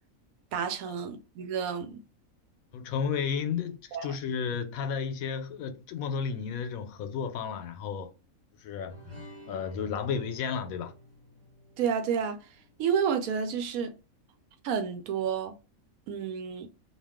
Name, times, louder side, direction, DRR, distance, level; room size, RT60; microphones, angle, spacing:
voice 1, 0.5-2.0 3.9-4.1 11.8-12.4 12.8-13.9 14.6-15.6 16.1-16.7, right 7 dB, 80° right, 1.0 m, -30 dB
voice 2, 2.7-8.1 8.6-9.0 9.5-10.9, left 6 dB, 80° left, 1.0 m, -32 dB
sound 1, 8.9-13.6, equal, 30° right, 1.1 m, -52 dB
2.5 x 2.3 x 3.4 m
omnidirectional pair, 1.5 m